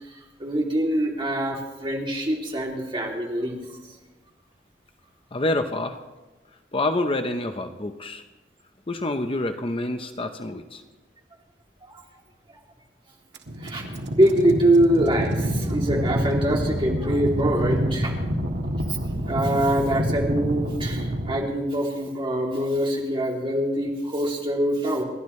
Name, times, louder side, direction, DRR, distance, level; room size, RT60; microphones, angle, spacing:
voice 1, 0.4-3.6 13.6-18.1 19.3-25.0, right 1 dB, 30° right, -2 dB, 2.9 m, -24 dB
voice 2, 5.3-6.0 6.7-8.2 8.9-10.8, left 2 dB, 30° left, 7 dB, 0.8 m, -27 dB
sound 1, 13.3-21.4, equal, 80° right, 1.7 m, -27 dB
29.5 x 11.5 x 3.2 m, 1.2 s
head